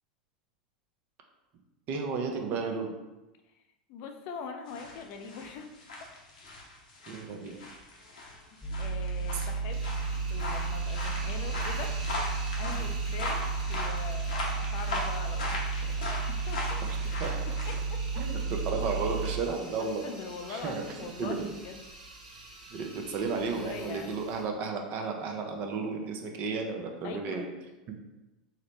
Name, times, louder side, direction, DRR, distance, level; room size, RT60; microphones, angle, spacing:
voice 1, 1.9-2.9 7.1-7.6 9.3-9.4 12.7-13.0 17.2-17.6 18.2-20.1 20.5-21.5 22.7-27.4, right 4 dB, 45° right, 3 dB, 0.6 m, -33 dB
voice 2, 3.9-5.8 8.8-9.8 10.3-11.9 12.6-16.8 17.5-18.2 19.8-21.8 23.5-24.2 27.0-27.5, left 5 dB, 55° left, 5 dB, 0.4 m, -42 dB
sound 1, 4.7-17.8, left 2 dB, 80° left, 0.8 m, -39 dB
sound 2, 8.6-19.4, right 4 dB, 5° right, 0.5 m, -32 dB
sound 3, 9.7-24.4, right 1 dB, 85° right, 0.7 m, -46 dB
3.9 x 2.1 x 3.0 m, 1.1 s
hypercardioid pair, 90°, 4 cm